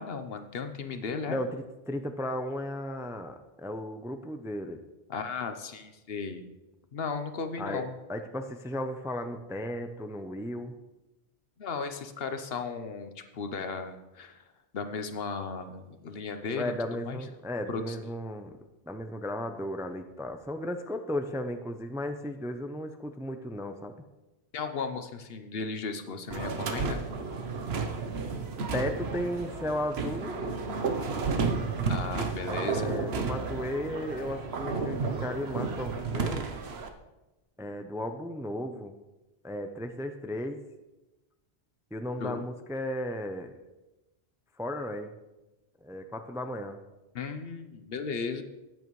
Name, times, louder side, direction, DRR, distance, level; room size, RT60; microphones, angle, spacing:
voice 1, 0.0-1.4 5.1-6.4 6.9-8.0 11.6-14.4 14.7-16.7 17.1-17.2 17.7-18.0 24.5-27.0 31.9-33.0 42.2-42.5 47.1-48.4, left 5 dB, 65° left, 8 dB, 1.0 m, -35 dB
voice 2, 1.3-4.8 7.6-7.8 8.1-10.7 16.6-18.6 18.9-23.9 28.7-30.4 32.5-36.5 37.6-38.9 39.4-40.6 41.9-43.6 44.6-45.1 45.8-46.8, left 1 dB, 5° right, 7 dB, 0.4 m, -35 dB
sound 1, 26.3-36.9, right 4 dB, 75° right, 1.1 m, -32 dB
14.0 x 9.2 x 3.1 m, 1.0 s
omnidirectional pair, 1.1 m